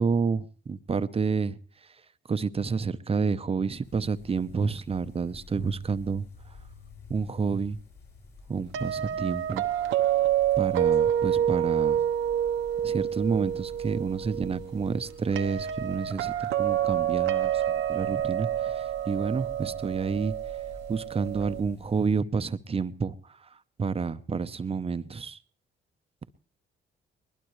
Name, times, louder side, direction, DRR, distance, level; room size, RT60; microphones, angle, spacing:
voice 1, 0.0-1.6 2.3-6.2 7.1-7.8 8.5-9.7 10.6-12.0 12.8-20.4 20.9-23.5 23.8-25.4, right 5 dB, 30° right, 0.8 m, -29 dB
sound 1, 3.8-22.1, left 3 dB, 60° left, 7.5 m, -50 dB
sound 2, 8.7-21.6, right 10 dB, 85° right, 1.0 m, -28 dB
21.0 x 20.5 x 3.2 m
cardioid pair, 90°, 20 cm